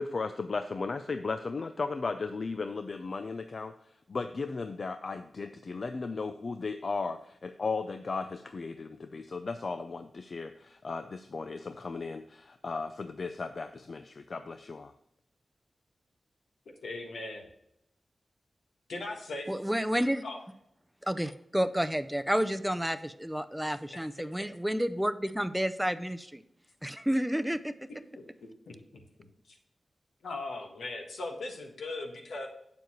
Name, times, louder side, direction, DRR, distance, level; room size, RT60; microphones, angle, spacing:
voice 1, 0.0-3.7 4.1-14.9, left 4 dB, 60° left, 9 dB, 0.4 m, -36 dB
voice 2, 16.8-17.4 18.9-19.5 20.2-20.4 23.9-24.0 28.7-29.0 29.5-29.6 30.2-32.5, left 2 dB, 90° left, 2 dB, 1.4 m, -38 dB
voice 3, 19.5-20.2 21.0-26.4 26.8-27.7, equal, 5° right, 11 dB, 0.4 m, -30 dB
7.7 x 7.0 x 3.0 m, 0.78 s
cardioid pair, 60°, 0 cm